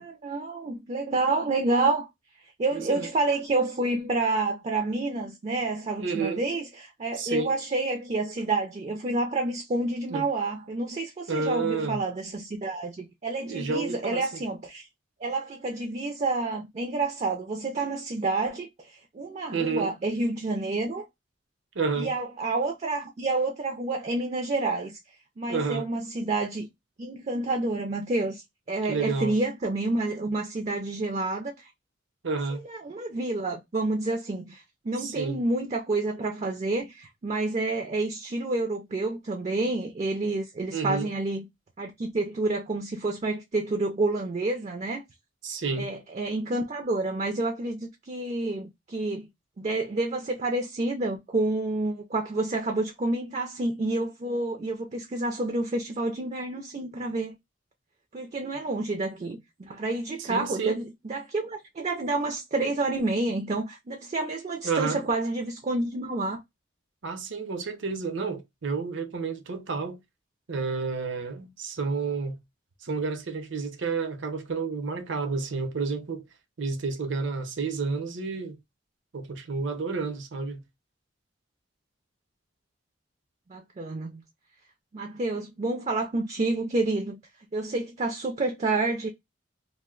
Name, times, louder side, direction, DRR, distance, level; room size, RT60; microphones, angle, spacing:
voice 1, 0.0-2.1 2.6-14.9 15.2-21.0 22.0-25.0 25.4-26.7 27.0-28.4 28.7-31.7 32.6-41.4 41.8-45.0 45.8-49.3 49.6-57.4 58.1-66.4 83.5-84.2 84.9-87.2 87.5-89.1, right 2 dB, 35° right, 0.4 m, -29 dB
voice 2, 2.7-3.1 6.0-6.4 7.1-7.6 10.1-10.3 11.3-12.0 13.4-14.4 19.5-19.9 21.7-22.1 25.5-25.9 28.8-29.4 32.2-32.6 35.0-35.4 40.7-41.1 45.4-45.9 60.2-60.8 64.6-65.0 67.0-70.0 70.5-72.4 72.8-76.2 76.6-78.6 79.1-80.6, right 4 dB, 70° right, 0.7 m, -30 dB
2.6 x 2.1 x 3.6 m
head